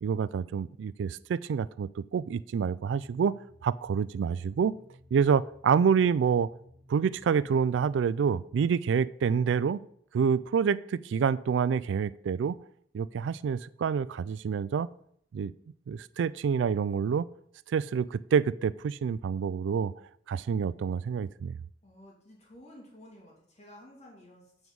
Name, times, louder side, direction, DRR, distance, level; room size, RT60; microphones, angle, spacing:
voice 1, 0.0-3.4 3.6-4.7 5.1-6.5 6.9-9.8 10.1-12.6 12.9-14.9 15.3-15.5 15.9-17.3 17.7-19.9 20.3-21.6, right 6 dB, 90° right, 19 dB, 0.3 m, -27 dB
sound 1, 2.8-8.2, equal, 15° right, 1.4 m, -57 dB
voice 2, 21.8-24.7, left 1 dB, 40° left, -2 dB, 2.3 m, -53 dB
8.0 x 4.7 x 5.4 m, 0.67 s
head